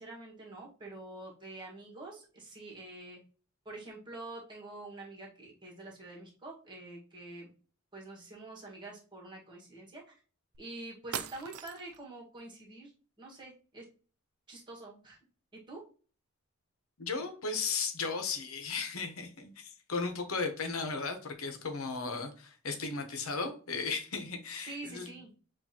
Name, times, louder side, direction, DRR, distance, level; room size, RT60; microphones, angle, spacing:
voice 1, 0.0-3.2 3.6-7.5 7.9-10.1 10.6-12.9 13.2-13.9 14.5-15.2 15.5-15.8 24.6-25.3, right 2 dB, 20° right, 1.6 m, -46 dB
sound 1, 10.5-10.6 11.1-12.0, right 8 dB, 85° right, 0.5 m, -40 dB
voice 2, 17.0-25.1, left 4 dB, 70° left, 0.9 m, -36 dB
7.0 x 2.6 x 2.9 m
head